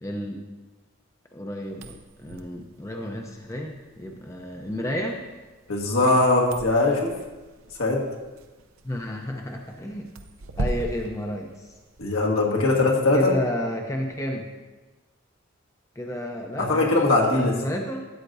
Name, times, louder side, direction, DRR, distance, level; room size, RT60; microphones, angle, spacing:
voice 1, 0.0-0.4 1.3-5.2 8.8-10.1 10.6-11.7 13.1-14.5 16.0-17.0 17.3-18.0, equal, 15° left, 2 dB, 0.5 m, -31 dB
sound 1, 1.7-12.2, right 2 dB, 75° right, 0.6 m, -39 dB
voice 2, 5.7-7.1 7.8-8.0 12.0-13.3 16.6-17.6, left 2 dB, 75° left, 0 dB, 1.6 m, -21 dB
13.0 x 8.7 x 2.6 m, 1.2 s
head